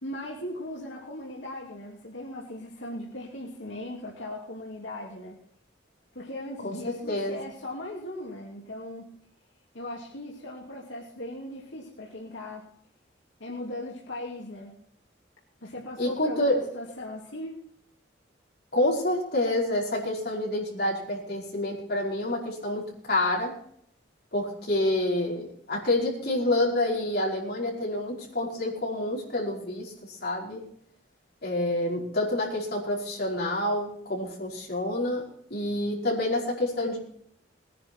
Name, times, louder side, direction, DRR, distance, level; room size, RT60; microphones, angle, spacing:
voice 1, 0.0-5.4 6.1-9.1 9.7-12.7 13.4-14.8 15.6-16.4 16.7-17.6, left 1 dB, 85° left, -3 dB, 2.7 m, -38 dB
voice 2, 6.6-7.4 16.0-16.6 18.7-23.5 24.3-30.6 31.4-35.2 35.5-37.0, left 1 dB, 55° left, -3 dB, 5.1 m, -28 dB
19.5 x 10.0 x 4.6 m, 0.65 s
head